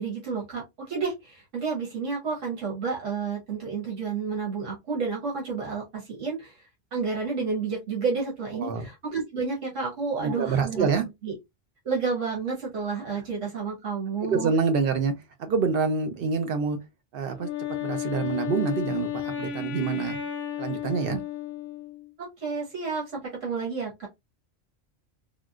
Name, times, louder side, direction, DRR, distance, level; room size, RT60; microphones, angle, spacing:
voice 1, 0.0-6.5 6.9-10.9 11.2-11.3 11.8-14.5 22.2-24.1, right 5 dB, 80° right, 1.5 m, -30 dB
voice 2, 10.2-11.0 14.3-15.1 15.4-16.8 17.1-17.5 17.8-20.2 20.6-21.2, right 5 dB, 55° right, 0.8 m, -26 dB
Wind instrument woodwind instrument, 17.4-22.1, left 10 dB, 50° left, 0.7 m, -33 dB
3.5 x 2.3 x 2.4 m
omnidirectional pair, 1.2 m